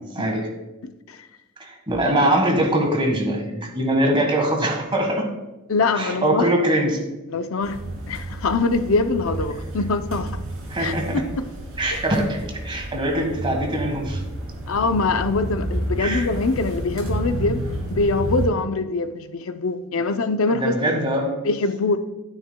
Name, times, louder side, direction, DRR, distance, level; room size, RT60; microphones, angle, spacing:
voice 1, 0.1-0.5 1.6-5.2 5.9-7.0 10.7-11.2 11.8-14.2 16.0-16.3 20.5-21.3, right 1 dB, 25° right, 1.4 m, -22 dB
voice 2, 0.8-1.2 5.7-6.4 7.3-10.4 10.8-10.9 11.9-12.0 14.7-17.6 17.9-20.7 21.4-22.0, left 3 dB, 70° left, 0.5 m, -23 dB
sound 1, 7.6-18.5, right 1 dB, 70° right, 2.7 m, -30 dB
9.6 x 9.1 x 2.2 m
head